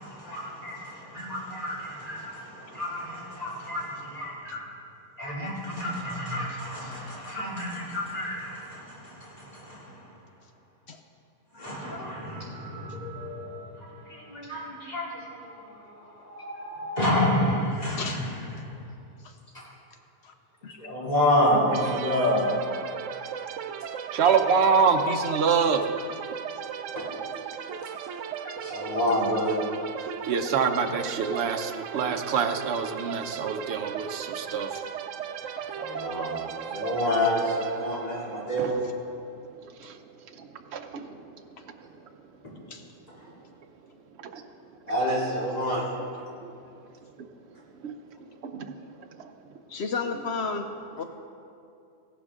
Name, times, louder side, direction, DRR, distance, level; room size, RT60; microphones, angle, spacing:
voice 1, 0.0-4.7 5.2-10.0 11.5-13.7 14.1-18.3 18.6-18.7 19.5-19.6 20.8-22.4 26.9-27.0 28.6-29.6 35.8-36.4 36.7-38.7 44.9-45.8, left 1 dB, 35° left, -6 dB, 2.9 m, -29 dB
voice 2, 20.6-21.1 23.7-23.8 24.2-24.3 28.4-28.5 34.7-34.8 42.7-42.8 49.7-50.7 51.0-51.1, left 4 dB, 65° left, 6 dB, 0.9 m, -33 dB
sound 1, 21.7-39.3, right 8 dB, 90° right, 0.9 m, -36 dB
voice 3, 24.1-25.8 27.7-27.8 30.3-34.8 38.6-38.8 39.6-40.0 40.4-41.2 44.2-44.4 46.4-46.5 47.8-47.9 48.4-48.7 49.2-49.3, right 5 dB, 65° right, 6 dB, 1.0 m, -26 dB
15.5 x 11.5 x 3.7 m, 2.5 s
omnidirectional pair, 1.2 m